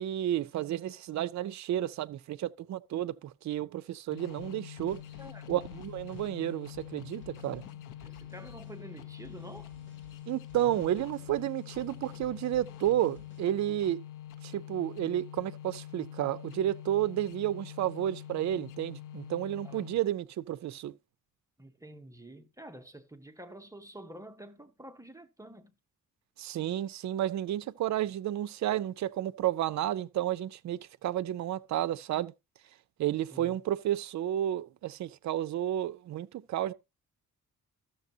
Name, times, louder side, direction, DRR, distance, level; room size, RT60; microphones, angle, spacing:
voice 1, 0.0-5.0 5.5-7.6 10.3-14.0 14.4-20.9 26.4-32.3 33.0-36.7, right 12 dB, 60° right, 0.4 m, -31 dB
sound 1, 4.1-20.2, left 11 dB, 70° left, 0.7 m, -46 dB
sound 2, 4.8-13.5, left 1 dB, 35° left, 2.5 m, -58 dB
voice 2, 5.2-5.7 8.0-9.7 19.6-19.8 21.6-25.7 33.3-33.6, right 1 dB, 10° right, 0.6 m, -48 dB
13.0 x 6.7 x 2.7 m
wide cardioid pair, 135°, 33 cm